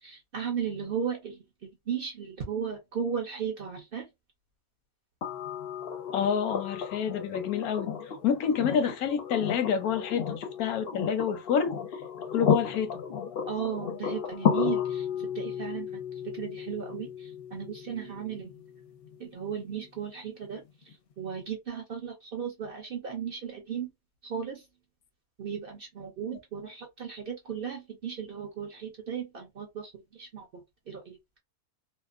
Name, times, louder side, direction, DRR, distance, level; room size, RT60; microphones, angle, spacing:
voice 1, 0.0-4.1 13.5-16.0 16.3-18.5 19.2-23.9 24.2-24.6 25.4-31.2, right 7 dB, 55° right, 0.6 m, -36 dB
sound 1, 5.2-19.1 20.9-21.0, left 8 dB, 60° left, 0.6 m, -33 dB
voice 2, 6.1-11.8 12.3-13.0, left 7 dB, 90° left, 1.1 m, -28 dB
2.8 x 2.0 x 2.4 m
omnidirectional pair, 1.5 m